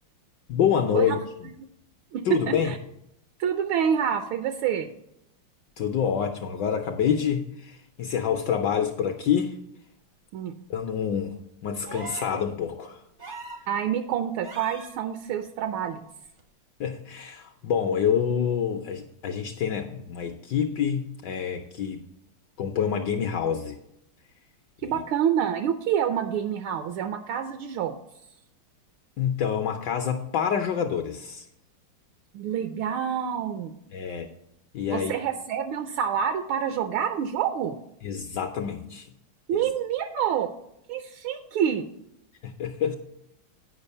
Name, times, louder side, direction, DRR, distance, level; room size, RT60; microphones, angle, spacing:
voice 1, 0.5-1.2 2.2-2.7 5.8-9.6 10.7-11.3 11.6-13.0 16.8-22.0 22.6-23.8 24.8-25.0 29.2-31.4 33.9-34.3 34.7-35.1 38.0-39.1 39.5-39.7 42.4-42.9, left 8 dB, 70° left, 5 dB, 1.0 m, -27 dB
voice 2, 2.1-2.8 3.4-4.9 10.3-10.5 13.7-16.0 24.8-28.0 32.3-33.7 34.9-37.8 39.5-40.5 40.9-41.9, right 8 dB, 80° right, 8 dB, 1.4 m, -27 dB
sound 1, 11.8-12.4 13.2-13.7 14.4-14.9 16.4-16.5, right 4 dB, 50° right, 0.6 m, -40 dB
8.9 x 5.2 x 5.4 m, 0.79 s
omnidirectional pair, 2.4 m